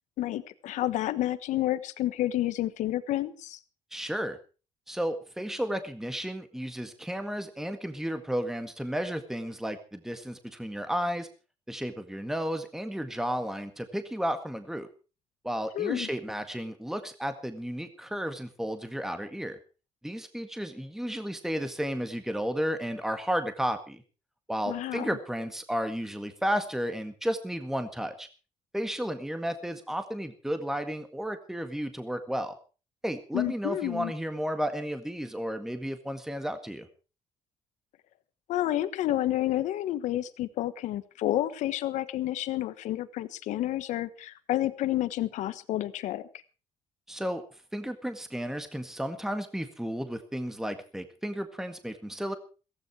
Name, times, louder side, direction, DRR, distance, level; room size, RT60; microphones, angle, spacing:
voice 1, 0.2-3.6 15.7-16.1 24.7-25.1 33.3-34.1 38.5-46.2, left 14 dB, 90° left, 13 dB, 1.2 m, -30 dB
voice 2, 3.9-4.4 4.9-11.3 11.7-14.9 15.4-19.6 20.0-24.0 24.5-28.3 28.7-32.5 33.0-36.9 47.1-47.4 47.7-52.4, equal, 5° right, 8 dB, 1.8 m, -33 dB
16.0 x 15.0 x 4.8 m, 0.35 s
cardioid pair, 95°, 12 cm